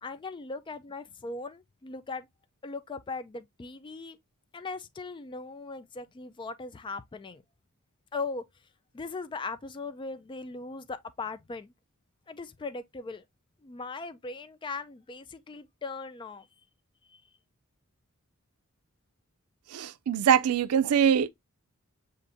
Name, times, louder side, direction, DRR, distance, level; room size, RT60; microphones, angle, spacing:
voice 1, 0.0-2.3 2.6-4.2 4.5-7.4 8.1-8.4 8.9-11.7 12.3-13.2 13.6-16.5 17.1-17.2, left 3 dB, 20° left, 0.3 m, -39 dB
voice 2, 19.7-21.3, right 8 dB, 90° right, 0.4 m, -23 dB
6.8 x 2.5 x 2.5 m
head